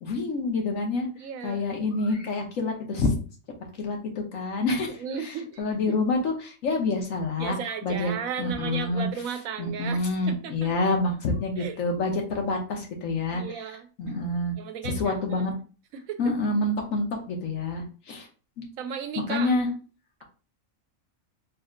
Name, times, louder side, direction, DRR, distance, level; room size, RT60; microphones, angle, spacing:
voice 1, 0.0-1.1 1.4-3.2 3.8-7.6 7.8-8.1 8.4-9.1 9.6-13.6 14.0-14.5 14.8-15.5 16.2-18.3 18.6-18.7 19.2-19.7, left 2 dB, 75° left, 1.4 m, -27 dB
voice 2, 1.2-1.6 5.0-6.0 7.4-10.7 11.6-11.8 13.3-13.9 14.6-15.4 15.9-16.2 18.8-19.5, right 7 dB, 85° right, 1.0 m, -35 dB
4.1 x 2.1 x 3.6 m
omnidirectional pair, 1.4 m